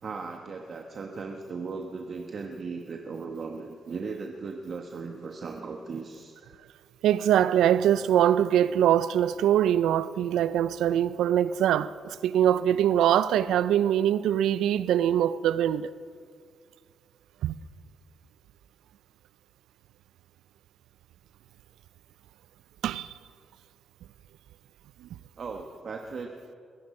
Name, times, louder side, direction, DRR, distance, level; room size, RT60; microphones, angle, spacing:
voice 1, 0.0-6.3 25.4-26.5, right 4 dB, 60° right, 1.2 m, -37 dB
voice 2, 7.0-15.9 17.4-17.6 22.8-23.1, right 10 dB, 90° right, 0.4 m, -23 dB
22.0 x 10.5 x 5.4 m
cardioid pair, 65°, 0 cm